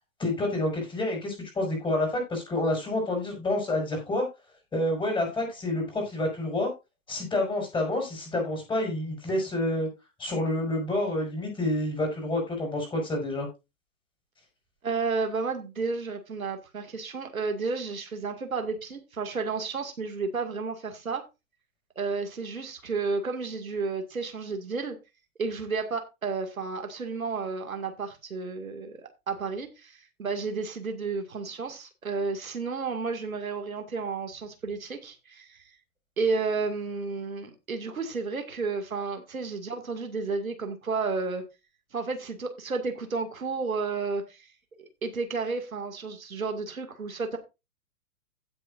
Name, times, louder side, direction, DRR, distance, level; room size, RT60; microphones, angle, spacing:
voice 1, 0.2-4.3 4.7-6.7 7.1-9.9 10.2-13.5, left 1 dB, 10° left, 5.4 m, -28 dB
voice 2, 14.8-21.2 22.0-25.0 25.4-35.6 36.2-41.4 41.9-44.5 44.8-47.4, right 4 dB, 70° right, 2.2 m, -32 dB
16.0 x 7.0 x 2.6 m
figure-of-eight pair, 110°, 43 cm